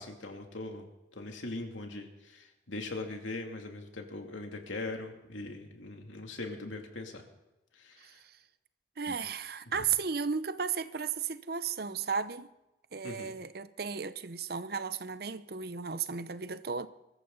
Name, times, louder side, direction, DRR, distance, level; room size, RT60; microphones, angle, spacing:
voice 1, 0.0-7.2 7.7-8.2 9.1-9.2 9.7-9.8 13.0-13.3, left 2 dB, 85° left, 2.7 m, -41 dB
voice 2, 9.0-12.5 12.9-16.9, right 6 dB, 50° right, 0.7 m, -34 dB
23.5 x 14.0 x 4.0 m
head